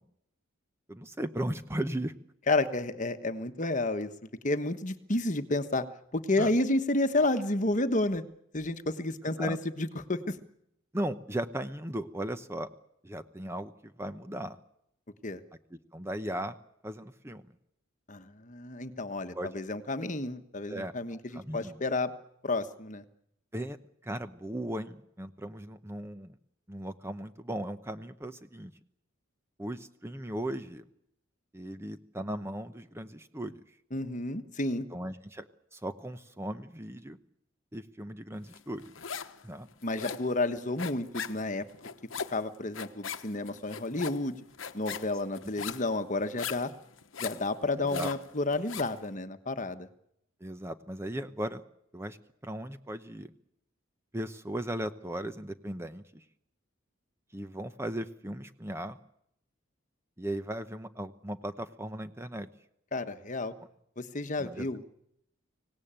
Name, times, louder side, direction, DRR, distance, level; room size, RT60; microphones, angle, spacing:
voice 1, 0.9-2.1 6.4-6.5 9.4-9.6 10.9-12.7 13.0-14.6 15.9-16.6 16.8-17.4 19.3-19.5 20.7-21.8 23.5-23.8 24.0-26.4 26.7-28.7 29.6-30.8 31.5-33.6 34.9-37.2 37.7-38.8 39.4-39.7 47.8-48.1 50.4-51.6 51.9-52.2 52.4-53.3 54.1-56.2 57.3-59.0 60.2-62.5 64.4-64.7, right 1 dB, 10° right, 10 dB, 0.8 m, -37 dB
voice 2, 2.5-4.1 4.4-5.9 6.1-8.2 8.5-10.4 15.2-15.4 18.1-22.1 22.4-23.0 33.9-34.9 39.8-41.6 42.3-44.4 44.7-46.7 47.2-49.9 62.9-63.5 64.0-64.8, left 2 dB, 40° left, 9 dB, 1.3 m, -31 dB
sound 1, 38.5-39.4 39.7-49.0, left 6 dB, 70° left, 1.1 m, -40 dB
25.0 x 18.0 x 8.9 m, 0.78 s
head